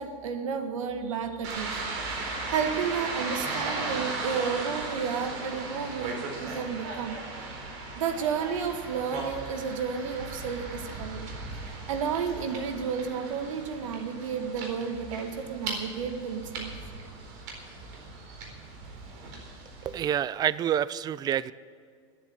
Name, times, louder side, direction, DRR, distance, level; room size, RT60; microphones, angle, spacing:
voice 1, 0.0-1.8 2.3-7.2 8.0-11.3 11.9-16.7, right 6 dB, 85° right, 7 dB, 1.6 m, -32 dB
sound 1, 1.4-20.0, right 3 dB, 65° right, 4.3 m, -37 dB
voice 2, 19.8-21.5, right 10 dB, 25° right, 19 dB, 0.4 m, -27 dB
11.0 x 10.5 x 10.0 m, 2.2 s
supercardioid pair, 120°, 16 cm